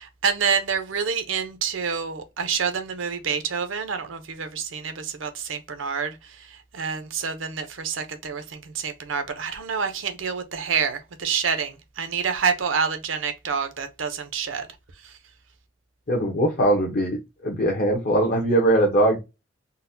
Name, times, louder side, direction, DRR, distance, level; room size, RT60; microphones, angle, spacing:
voice 1, 0.0-14.7 15.0-15.1, right 6 dB, 85° right, 0.6 m, -28 dB
voice 2, 16.1-19.2, right 1 dB, 50° left, 0.7 m, -21 dB
3.9 x 2.1 x 2.6 m
head